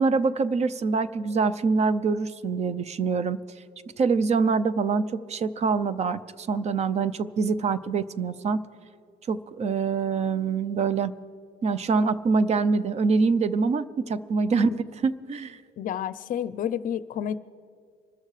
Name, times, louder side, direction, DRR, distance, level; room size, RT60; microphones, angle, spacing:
voice 1, 0.0-3.4 4.0-8.6 9.3-11.1 11.6-14.7 15.0-15.6, right 4 dB, 40° right, 15 dB, 0.6 m, -25 dB
voice 2, 15.8-17.4, left 9 dB, 55° left, 15 dB, 0.5 m, -30 dB
26.0 x 13.5 x 3.3 m, 2.3 s
cardioid pair, 110°, 17 cm